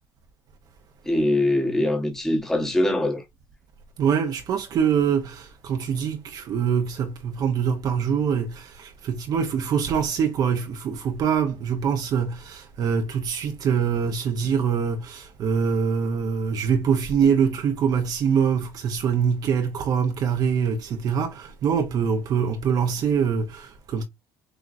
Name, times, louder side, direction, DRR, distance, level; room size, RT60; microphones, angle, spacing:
voice 1, 1.1-3.2, left 1 dB, 5° left, 1.1 m, -22 dB
voice 2, 4.0-24.0, right 7 dB, 50° right, 0.8 m, -24 dB
6.2 x 3.0 x 2.5 m
cardioid pair, 130°, 9 cm